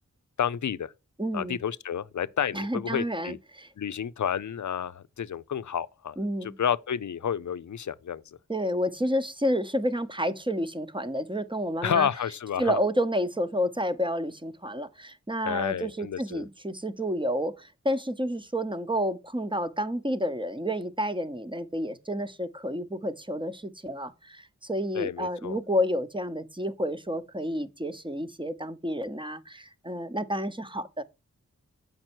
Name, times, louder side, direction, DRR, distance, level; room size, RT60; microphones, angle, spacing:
voice 1, 0.4-0.9 1.3-3.4 3.8-8.4 11.8-12.8 15.4-16.5 24.9-25.6, left 8 dB, 70° left, 0.6 m, -30 dB
voice 2, 1.2-1.6 2.5-3.7 6.2-6.5 8.5-12.1 12.6-31.0, equal, 15° right, 0.8 m, -30 dB
7.5 x 5.4 x 4.4 m
cardioid pair, 50°, 31 cm